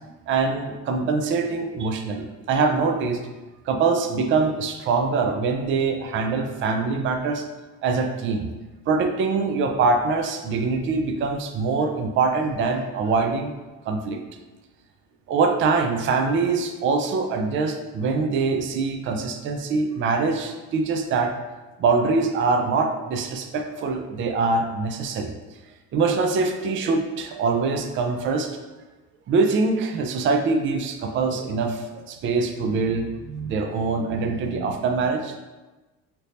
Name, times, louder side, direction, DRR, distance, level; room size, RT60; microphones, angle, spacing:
voice 1, 0.3-3.2 3.7-7.4 7.8-8.5 8.9-13.5 13.9-14.2 15.3-21.3 21.8-25.3 25.9-28.5 29.3-35.4, right 4 dB, 35° right, 5 dB, 0.4 m, -23 dB
2.8 x 2.5 x 3.4 m, 1.1 s
cardioid pair, 105°, 34 cm